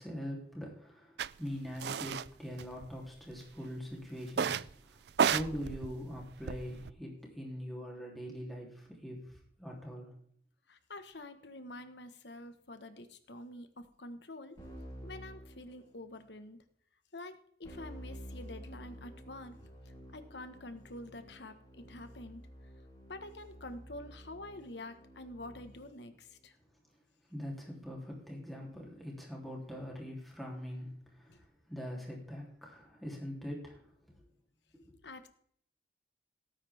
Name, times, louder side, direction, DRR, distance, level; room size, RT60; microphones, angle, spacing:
voice 1, 0.0-10.1 27.3-34.3 34.7-35.0, equal, ahead, -2 dB, 3.3 m, -43 dB
sound 1, 1.2-1.3 1.8-2.3 2.6-3.3 4.3-4.7 5.1-6.9, right 7 dB, 70° right, 0.4 m, -32 dB
voice 2, 10.7-14.6 15.0-16.6 17.1-22.4 23.1-26.6 31.3-31.4 35.0-35.3, left 2 dB, 80° left, 9 dB, 1.5 m, -47 dB
Keyboard (musical), 14.6-16.2 17.6-26.0, equal, 20° left, 4.0 m, -51 dB
18.0 x 8.9 x 3.6 m, 0.63 s
head